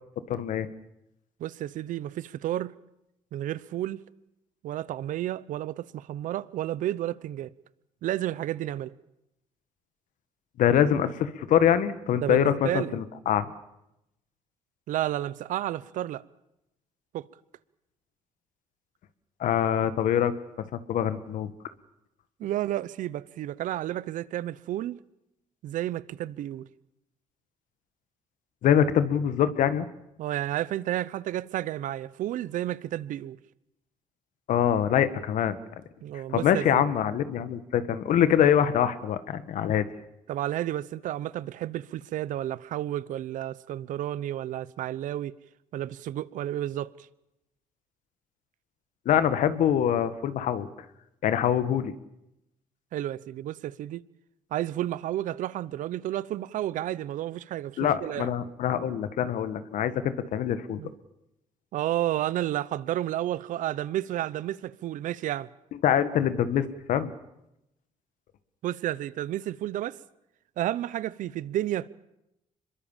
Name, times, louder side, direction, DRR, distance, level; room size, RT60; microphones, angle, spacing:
voice 1, 0.3-0.7 10.6-13.5 19.4-20.3 20.7-21.5 28.6-29.8 34.5-35.6 36.3-39.9 49.0-50.7 51.2-51.9 57.8-60.8 65.8-67.1, left 9 dB, 75° left, 1.6 m, -24 dB
voice 2, 1.4-2.7 3.3-4.0 4.6-7.5 8.0-8.9 12.2-13.0 14.9-16.2 17.1-17.3 22.4-25.0 25.6-26.7 30.2-33.4 36.0-36.8 40.3-45.3 45.7-46.9 52.9-54.0 54.5-58.3 60.8-60.9 61.7-65.5 68.6-70.0 70.6-71.9, right 13 dB, 80° right, 0.8 m, -31 dB
26.0 x 22.0 x 7.4 m
cardioid pair, 85°, 13 cm